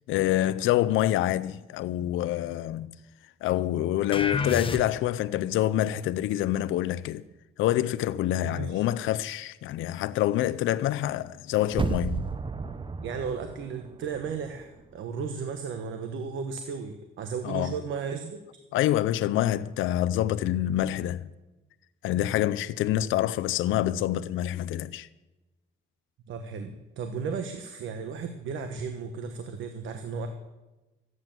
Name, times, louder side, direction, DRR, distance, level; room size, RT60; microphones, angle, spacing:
voice 1, 0.1-2.9 3.4-7.2 7.6-12.3 17.4-17.7 18.7-21.3 22.0-25.1, left 13 dB, 85° left, 0.5 m, -26 dB
sound 1, 4.1-5.3, left 4 dB, 25° left, 1.1 m, -29 dB
voice 2, 8.4-8.8 13.0-18.4 26.3-30.3, right 5 dB, 75° right, 1.2 m, -35 dB
sound 2, 11.7-14.6 15.0-15.1, right 4 dB, 25° right, 0.8 m, -33 dB
14.0 x 9.5 x 7.4 m
cardioid pair, 90°, 20 cm